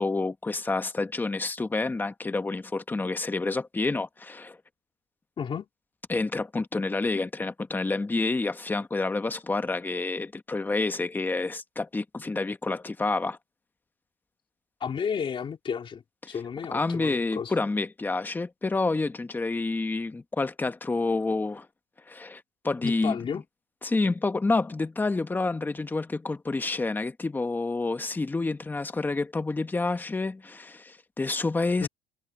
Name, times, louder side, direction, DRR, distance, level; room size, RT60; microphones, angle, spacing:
voice 1, 0.0-4.6 6.1-13.4 16.7-21.7 22.1-23.4 23.8-31.9, left 3 dB, 10° left, 1.1 m, -28 dB
voice 2, 14.8-17.5 22.8-23.4 31.8-31.9, left 7 dB, 30° left, 3.0 m, -32 dB
cardioid pair, 135°, 17 cm